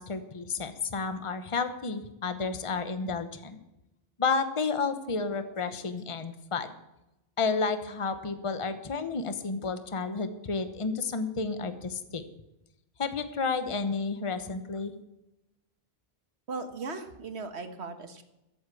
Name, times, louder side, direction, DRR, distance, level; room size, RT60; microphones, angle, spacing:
voice 1, 0.0-3.6 4.2-6.7 7.4-12.2 13.0-15.0, left 4 dB, 30° left, 10 dB, 1.0 m, -31 dB
voice 2, 16.5-18.2, right 4 dB, 85° right, 8 dB, 1.7 m, -38 dB
13.5 x 8.4 x 7.0 m, 0.92 s
omnidirectional pair, 1.1 m